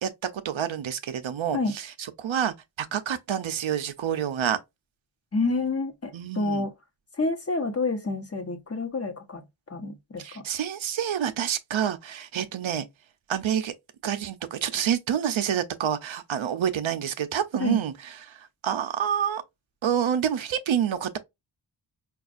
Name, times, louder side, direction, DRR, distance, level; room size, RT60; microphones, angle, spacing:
voice 1, 0.0-4.6 6.1-6.7 10.2-12.9 13.3-13.7 14.0-19.4 19.8-21.2, right 9 dB, 75° right, 0.6 m, -28 dB
voice 2, 5.3-6.7 7.2-9.4 9.7-10.4 17.6-17.8, left 3 dB, 30° left, 0.9 m, -28 dB
5.2 x 2.4 x 2.4 m
wide cardioid pair, 120°, 47 cm